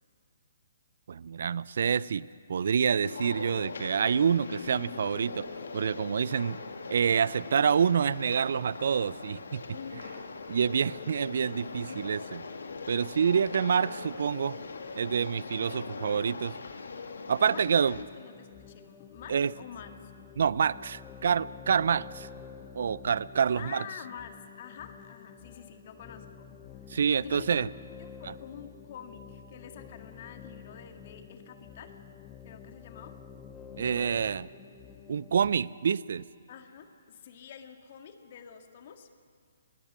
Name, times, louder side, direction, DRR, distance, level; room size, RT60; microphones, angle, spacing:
voice 1, 1.1-5.5 5.7-6.6 6.9-9.6 10.5-12.4 12.9-14.6 15.0-16.5 17.3-18.0 19.3-19.5 20.4-22.3 22.7-23.8 26.9-27.7 33.8-34.5 35.1-36.2, right 7 dB, 60° right, 21 dB, 0.5 m, -27 dB
sound 1, 3.0-18.0, left 4 dB, 70° left, 1.8 m, -41 dB
voice 2, 9.7-10.3 17.5-20.1 23.5-26.5 26.9-27.7 28.0-31.9 32.4-33.2 33.8-34.3 36.5-39.1, left 7 dB, 45° left, 6 dB, 1.8 m, -47 dB
sound 2, 17.9-35.5, left 7 dB, 20° left, 1.2 m, -49 dB
20.5 x 17.5 x 8.1 m, 2.3 s
figure-of-eight pair, 130°, 0 cm